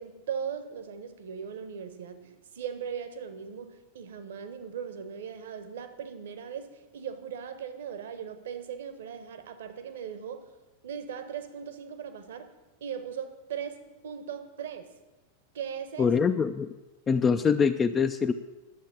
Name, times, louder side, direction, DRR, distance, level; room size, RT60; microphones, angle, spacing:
voice 1, 0.0-10.5 10.8-12.5 12.8-14.9 15.5-16.2, right 7 dB, 60° right, 9 dB, 1.3 m, -39 dB
voice 2, 16.0-16.7 17.1-18.3, left 6 dB, 20° left, 7 dB, 0.5 m, -24 dB
11.0 x 7.3 x 8.8 m, 1.1 s
figure-of-eight pair, 90°, 0 cm